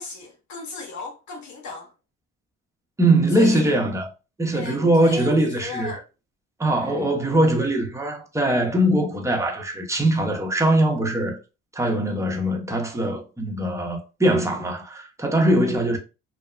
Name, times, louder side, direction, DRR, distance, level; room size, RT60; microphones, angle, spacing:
voice 1, 0.0-1.9 3.3-3.8 4.5-6.0 6.8-7.1 15.6-15.8, left 3 dB, 65° left, 0.9 m, -37 dB
voice 2, 3.0-4.1 4.4-5.9 6.6-11.4 11.7-16.0, right 1 dB, 10° right, 0.6 m, -21 dB
2.8 x 2.2 x 2.3 m
cardioid pair, 90°, 30 cm